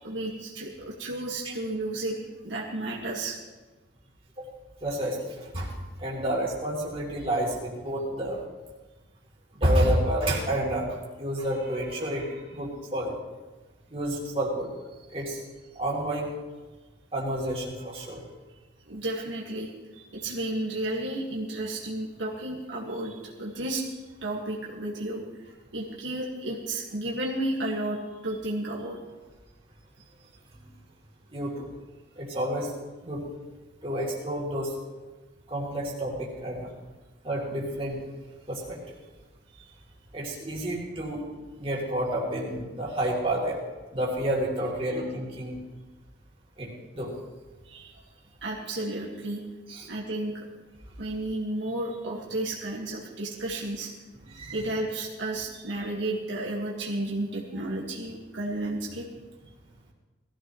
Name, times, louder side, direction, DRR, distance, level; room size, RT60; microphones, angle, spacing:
voice 1, 0.0-2.2 2.4-3.4 18.9-19.7 20.1-23.8 24.2-25.4 25.7-29.0 39.6-39.7 47.7-47.9 48.4-49.4 49.9-50.5 51.0-53.9 54.5-59.1, right 1 dB, 75° right, -2 dB, 1.8 m, -32 dB
voice 2, 4.8-5.7 6.0-8.4 9.6-13.1 13.9-14.7 15.1-15.4 15.7-16.3 17.1-18.2 31.3-31.7 32.2-32.7 33.0-33.2 33.8-34.7 35.5-36.7 37.2-38.0 38.5-38.8 40.1-41.2 41.6-43.6 43.9-45.6 46.6-46.7 46.9-47.1 47.8-47.9 49.7-49.9 54.1-54.6, right 1 dB, 30° right, -4 dB, 3.0 m, -29 dB
19.5 x 14.5 x 3.1 m, 1.2 s
head